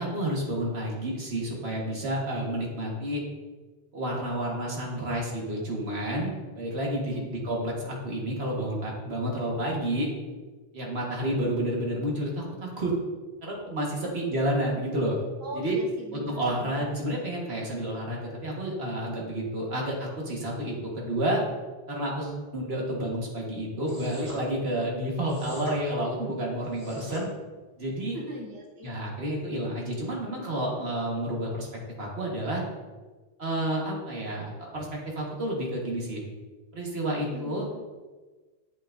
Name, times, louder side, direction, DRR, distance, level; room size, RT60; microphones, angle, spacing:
voice 1, 0.0-3.2 3.9-10.1 10.7-12.9 13.4-15.2 15.5-15.8 16.1-21.4 21.9-27.3 27.8-28.2 28.8-31.7 32.0-32.6 33.4-36.2 36.7-37.7, right 1 dB, 85° right, -2 dB, 1.9 m, -30 dB
voice 2, 15.4-16.9 28.1-28.9 37.3-37.7, equal, 20° right, -1 dB, 1.1 m, -41 dB
sound 1, 23.8-24.4 25.3-25.8 26.6-27.2, equal, 50° right, 3.0 m, -41 dB
8.5 x 7.9 x 2.6 m, 1.3 s
omnidirectional pair, 1.0 m